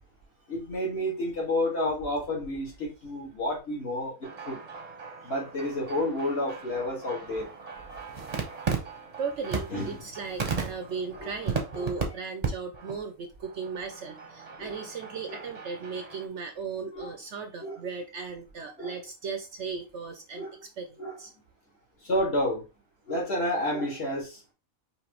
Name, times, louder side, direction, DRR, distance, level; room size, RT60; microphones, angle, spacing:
voice 1, 0.5-4.6 5.2-7.5 9.7-10.0 11.2-11.3 11.7-11.9 14.6-14.8 15.3-15.4 17.0-17.1 17.6-17.8 18.8-18.9 20.4-20.5 21.0-21.2 22.0-22.6 23.1-24.4, left 1 dB, 45° left, -4 dB, 2.2 m, -30 dB
sound 1, 4.2-12.0 12.4-12.5 12.7-13.0 13.4-16.3, right 5 dB, 30° right, 0.8 m, -36 dB
voice 2, 9.2-20.5 20.8-21.3, right 5 dB, 65° right, 6 dB, 0.8 m, -37 dB
5.2 x 3.1 x 3.0 m, 0.29 s
omnidirectional pair, 1.5 m